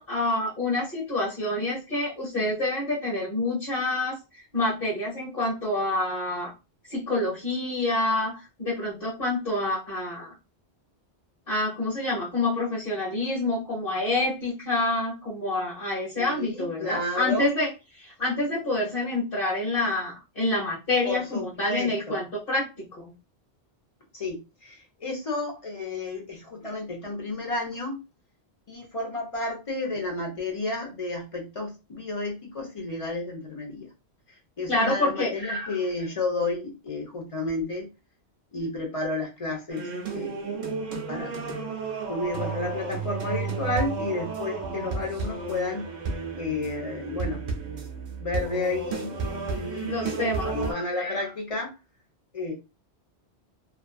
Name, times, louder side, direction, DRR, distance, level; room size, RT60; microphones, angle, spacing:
voice 1, 0.0-4.2 4.5-6.5 6.9-10.3 11.5-17.7 18.0-23.1 34.7-35.3 49.8-50.5, left 2 dB, 60° left, -6 dB, 1.2 m, -27 dB
voice 2, 16.1-17.5 21.0-22.2 24.1-28.0 28.7-33.9 34.3-37.9 38.5-40.7 41.1-41.5 42.1-45.8 46.4-47.4 47.9-49.2 49.5-51.7 52.3-52.5, left 2 dB, 35° left, 0 dB, 0.8 m, -32 dB
sound 1, 39.7-50.7, right 4 dB, 50° right, 0.6 m, -32 dB
2.5 x 2.4 x 2.3 m, 0.27 s
omnidirectional pair, 1.1 m